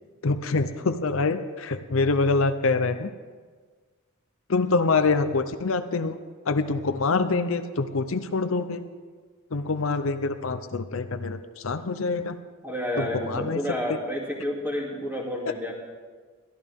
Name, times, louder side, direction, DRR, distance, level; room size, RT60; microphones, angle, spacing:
voice 1, 0.2-3.1 4.5-6.2 6.5-8.8 9.5-12.4 13.0-13.6, left 3 dB, 65° left, 9 dB, 0.7 m, -25 dB
voice 2, 12.6-15.7, equal, 10° right, -3 dB, 2.7 m, -30 dB
22.0 x 14.0 x 3.6 m, 1.5 s
head